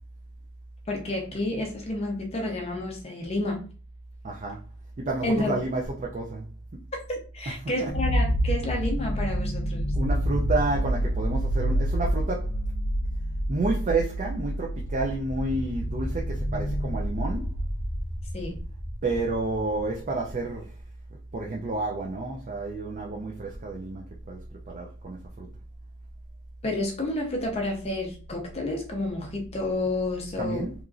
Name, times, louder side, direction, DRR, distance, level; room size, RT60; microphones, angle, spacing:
voice 1, 0.9-3.6 5.2-5.5 7.1-9.9 18.3-18.6 26.6-30.7, left 2 dB, 30° left, 0.5 m, -30 dB
voice 2, 4.2-4.6 5.0-6.5 6.7-6.8 10.0-12.5 13.5-17.5 19.0-20.7 21.3-24.4 24.7-25.5 30.4-30.7, right 2 dB, 35° right, 0.4 m, -30 dB
sound 1, 7.9-18.0, equal, 80° left, 0.6 m, -28 dB
sound 2, 14.2-20.9, equal, 55° right, 0.9 m, -37 dB
3.0 x 2.5 x 2.4 m
head